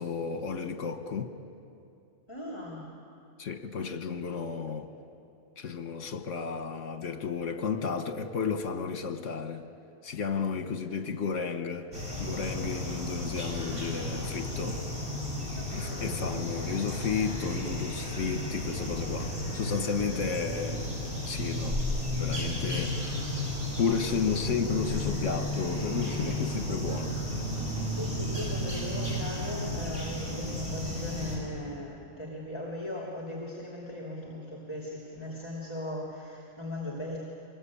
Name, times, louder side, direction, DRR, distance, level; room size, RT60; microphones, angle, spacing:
voice 1, 0.0-1.3 3.4-4.9 5.6-9.7 10.0-11.9 12.2-14.8 15.7-20.9 21.3-21.8 22.1-23.0 23.8-27.1, left 6 dB, 65° left, 8 dB, 1.6 m, -32 dB
voice 2, 2.3-2.9 15.6-16.3 20.3-20.8 27.9-37.2, left 1 dB, 20° left, -3 dB, 2.9 m, -39 dB
sound 1, 11.9-31.4, left 1 dB, 20° right, 7.7 m, -33 dB
25.0 x 21.0 x 8.6 m, 2.6 s
omnidirectional pair, 1.4 m